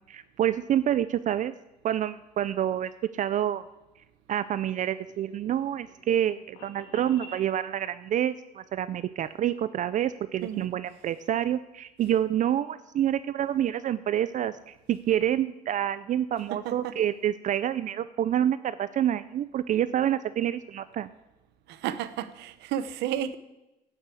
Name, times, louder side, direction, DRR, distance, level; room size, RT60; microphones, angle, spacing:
voice 1, 0.1-1.5 1.8-3.6 4.3-21.1, right 10 dB, 50° right, 0.4 m, -27 dB
sound 1, 4.7-7.5, left 2 dB, 75° left, 2.4 m, -49 dB
voice 2, 10.4-10.7 16.5-17.0 21.7-23.3, right 10 dB, 85° right, 0.8 m, -32 dB
10.5 x 7.2 x 8.3 m
cardioid pair, 110°, 17 cm